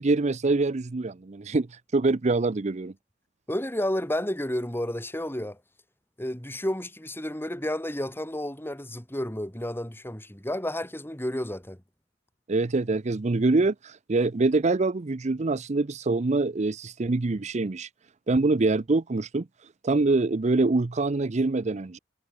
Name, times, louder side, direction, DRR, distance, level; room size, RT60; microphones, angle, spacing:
voice 1, 0.0-2.9 12.5-17.9 18.3-19.5 19.8-22.0, right 3 dB, 40° right, 0.6 m, -25 dB
voice 2, 3.5-5.6 6.2-11.8, left 1 dB, 10° left, 3.2 m, -31 dB
head